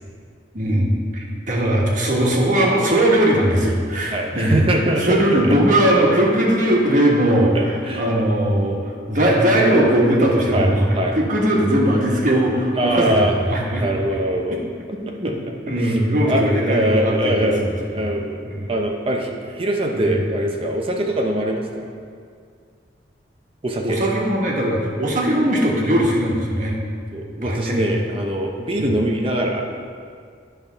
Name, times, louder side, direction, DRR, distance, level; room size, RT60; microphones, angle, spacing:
voice 1, 0.5-4.6 5.0-10.9 11.1-13.8 15.2-15.3 15.7-17.7 18.0-18.1 18.5-18.7 19.9-20.2 23.8-26.7 27.4-27.8 28.7-28.9, right 1 dB, 45° right, -2 dB, 1.3 m, -19 dB
voice 2, 4.1-5.6 7.5-8.0 10.5-11.2 12.8-13.4 13.8-14.6 15.2-15.3 15.7-16.0 16.3-21.9 23.6-24.0 27.1-29.6, right 1 dB, 30° right, 1 dB, 0.6 m, -23 dB
10.5 x 3.5 x 5.6 m, 2.1 s
head